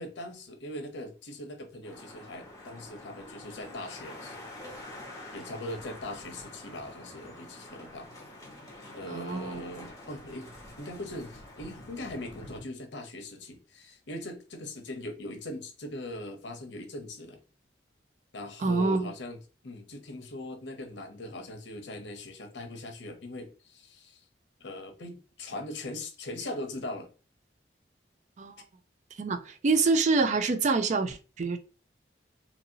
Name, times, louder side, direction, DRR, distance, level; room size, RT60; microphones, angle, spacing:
voice 1, 0.0-4.4 5.3-8.1 8.9-10.5 10.8-17.4 18.3-19.4 19.6-24.2 24.6-27.1, left 1 dB, 80° left, 0.7 m, -40 dB
sound 1, 1.8-12.6, left 1 dB, 20° left, 0.9 m, -47 dB
voice 2, 9.1-9.6 18.6-19.1 28.4-28.5 29.2-31.6, right 4 dB, 40° right, 0.3 m, -26 dB
2.8 x 2.7 x 2.7 m
head